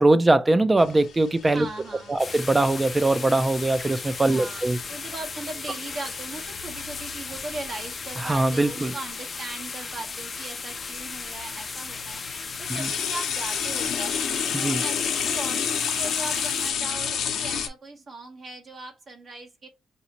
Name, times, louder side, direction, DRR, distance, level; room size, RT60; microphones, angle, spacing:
voice 1, 0.0-1.7 2.1-4.8 8.2-8.9 12.8-12.9 14.5-14.8, right 2 dB, 20° right, 0.6 m, -21 dB
sound 1, 0.8-8.9 10.1-10.2 11.0-17.7, left 7 dB, 75° left, 0.9 m, -31 dB
voice 2, 1.5-2.2 4.3-12.2 12.6-14.2 14.5-19.7, right 2 dB, 45° right, 1.0 m, -39 dB
sound 2, 2.2-16.7, left 4 dB, 35° left, 0.6 m, -36 dB
4.9 x 2.7 x 2.8 m
cardioid pair, 90°, 0 cm